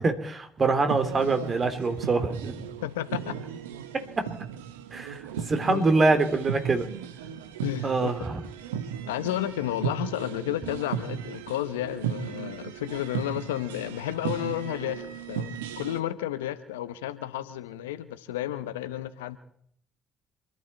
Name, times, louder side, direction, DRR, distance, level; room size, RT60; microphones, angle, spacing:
voice 1, 0.0-2.6 4.2-4.3 4.9-6.9 7.8-8.4, right 3 dB, 40° right, 8 dB, 2.9 m, -25 dB
sound 1, 0.9-16.0, right 8 dB, 85° right, 0.9 m, -36 dB
voice 2, 2.8-3.4 5.4-5.8 7.6-8.3 9.1-19.4, left 13 dB, 85° left, 12 dB, 0.9 m, -32 dB
28.0 x 11.5 x 4.3 m, 0.66 s
hypercardioid pair, 50°, 0 cm